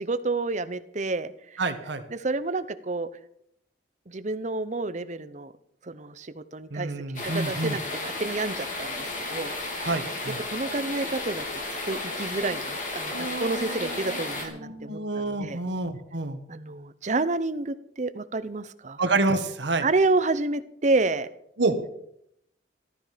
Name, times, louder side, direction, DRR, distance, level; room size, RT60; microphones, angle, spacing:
voice 1, 0.0-1.6 2.1-3.1 4.1-5.5 5.8-6.9 7.2-9.9 10.5-11.4 11.9-15.6 16.5-19.0 19.8-21.3, right 3 dB, 40° right, 13 dB, 0.8 m, -29 dB
voice 2, 1.6-2.0 6.7-7.8 9.8-10.4 13.1-16.4 19.0-19.9 21.6-21.8, right 3 dB, 75° right, 8 dB, 1.6 m, -28 dB
sound 1, 7.2-14.5, left 2 dB, 45° left, 3.2 m, -33 dB
15.0 x 13.0 x 5.1 m, 0.74 s
head